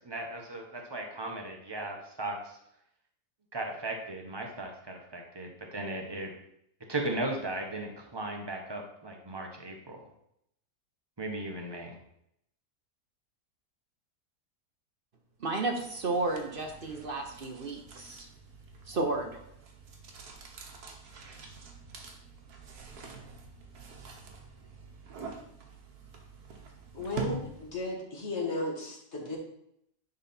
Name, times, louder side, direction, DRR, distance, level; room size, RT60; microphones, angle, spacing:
voice 1, 0.0-2.6 3.5-6.3 6.9-10.0 11.2-12.0, right 2 dB, 20° right, 2 dB, 1.0 m, -37 dB
voice 2, 15.4-18.3 18.9-19.4, right 2 dB, 45° right, 3 dB, 0.8 m, -32 dB
sound 1, 15.6-27.9, right 4 dB, 70° right, 1.6 m, -45 dB
voice 3, 26.9-29.4, left 2 dB, 40° left, -2 dB, 2.1 m, -35 dB
10.5 x 4.0 x 4.3 m, 0.75 s
omnidirectional pair, 1.8 m